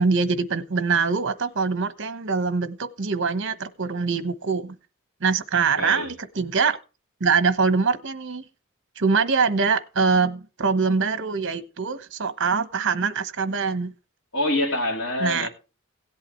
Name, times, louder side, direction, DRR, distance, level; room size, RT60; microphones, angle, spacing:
voice 1, 0.0-4.7 5.2-6.8 7.2-8.5 9.0-13.9 15.2-15.5, right 5 dB, 60° right, 1.0 m, -23 dB
voice 2, 5.8-6.1 14.3-15.5, left 1 dB, 60° left, 3.0 m, -25 dB
17.0 x 8.3 x 3.1 m
head